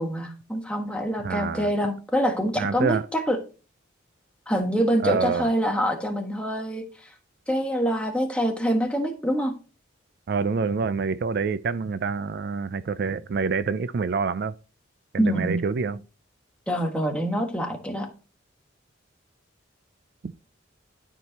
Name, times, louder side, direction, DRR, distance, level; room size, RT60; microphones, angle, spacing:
voice 1, 0.0-3.4 4.5-6.9 7.5-9.5 15.2-15.6 16.7-18.1, equal, 5° left, 1.3 m, -25 dB
voice 2, 1.2-1.7 2.6-3.1 5.0-5.5 10.3-14.5 15.1-16.0 20.2-20.3, right 5 dB, 50° right, 0.3 m, -26 dB
12.0 x 4.7 x 2.9 m
head